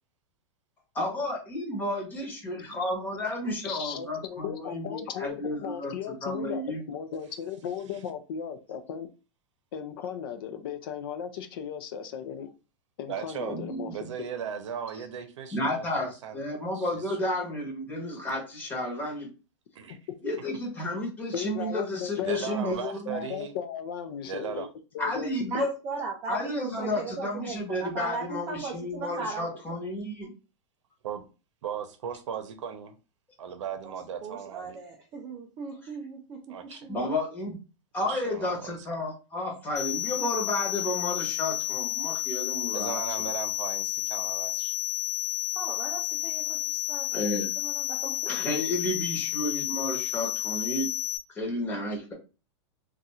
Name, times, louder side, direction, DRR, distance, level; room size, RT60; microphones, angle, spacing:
voice 1, 0.9-5.9 6.2-6.8 13.5-14.1 15.5-19.3 20.2-23.2 25.0-25.7 26.3-30.3 36.7-37.6 37.9-43.0 47.1-47.5 48.3-50.9 51.3-52.1, left 1 dB, 10° left, 0.9 m, -32 dB
voice 2, 3.6-9.1 9.7-12.5 13.0-13.9 21.3-24.7 24.9-25.3, left 8 dB, 50° left, 0.5 m, -36 dB
voice 3, 13.1-13.6 13.9-16.4 16.7-17.2 19.7-20.0 22.2-23.5 24.2-24.7 31.0-31.3 31.6-32.9 33.4-34.8 36.5-36.9 38.0-38.9 42.7-44.7, right 8 dB, 75° right, 0.7 m, -37 dB
voice 4, 25.5-29.6 33.8-33.9 34.2-37.0 45.5-47.3 47.6-48.4, right 4 dB, 20° right, 0.3 m, -38 dB
sound 1, 39.8-51.2, left 15 dB, 75° left, 1.1 m, -31 dB
2.4 x 2.4 x 4.1 m
supercardioid pair, 165°, 16 cm